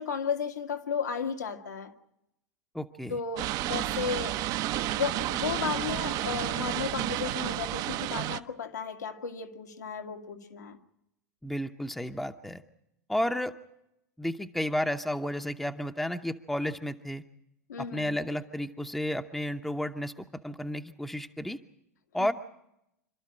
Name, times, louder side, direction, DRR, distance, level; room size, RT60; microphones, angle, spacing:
voice 1, 0.0-1.9 3.1-4.4 4.8-10.8 17.7-18.1, left 6 dB, 75° left, 1.9 m, -34 dB
voice 2, 2.7-3.2 11.4-12.6 13.1-13.5 14.2-17.2 17.8-20.1 20.4-21.6 22.1-22.3, left 1 dB, ahead, 0.8 m, -32 dB
sound 1, 3.4-8.4, right 14 dB, 45° right, 0.7 m, -31 dB
27.0 x 13.0 x 8.7 m
figure-of-eight pair, 90°, 9 cm